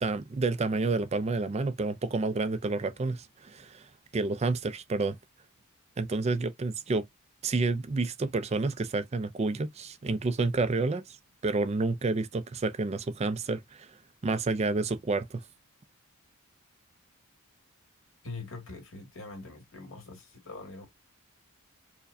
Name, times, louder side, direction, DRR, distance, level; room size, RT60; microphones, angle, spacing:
voice 1, 0.0-3.9 4.1-5.2 6.0-7.1 7.4-11.2 11.4-13.9 14.2-15.4, right 3 dB, 30° right, 0.4 m, -29 dB
voice 2, 18.2-20.9, left 3 dB, 65° left, 2.0 m, -43 dB
4.5 x 2.2 x 2.6 m
head